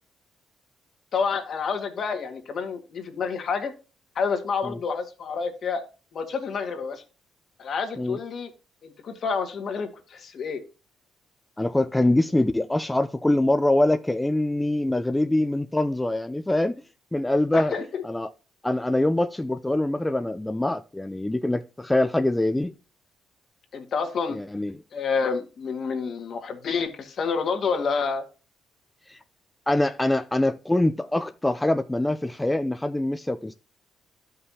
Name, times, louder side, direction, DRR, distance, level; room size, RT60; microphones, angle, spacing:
voice 1, 1.1-3.7 4.2-5.8 6.1-7.0 7.6-8.5 8.8-10.6 17.5-18.0 23.7-24.4 24.9-28.3, left 5 dB, 60° left, 1.7 m, -28 dB
voice 2, 11.6-16.7 17.1-17.7 18.0-18.3 18.6-22.7 24.3-24.8 29.1-29.2 29.7-33.5, left 1 dB, 10° left, 0.5 m, -24 dB
12.5 x 5.6 x 2.8 m
cardioid pair, 90°, 0 cm